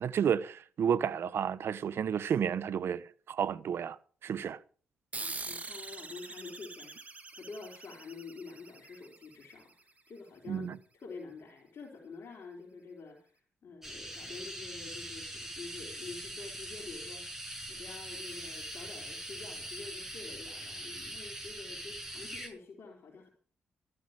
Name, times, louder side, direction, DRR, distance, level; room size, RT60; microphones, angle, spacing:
voice 1, 0.0-4.0 4.2-4.6 10.5-10.8, right 8 dB, 65° right, 0.9 m, -31 dB
sound 1, 5.1-10.1, right 3 dB, 35° right, 2.3 m, -44 dB
voice 2, 5.2-17.3 17.7-23.3, left 4 dB, 60° left, 3.6 m, -48 dB
sound 2, 13.8-22.5, right 1 dB, 10° right, 6.0 m, -42 dB
13.5 x 9.9 x 6.3 m
supercardioid pair, 50°, 4 cm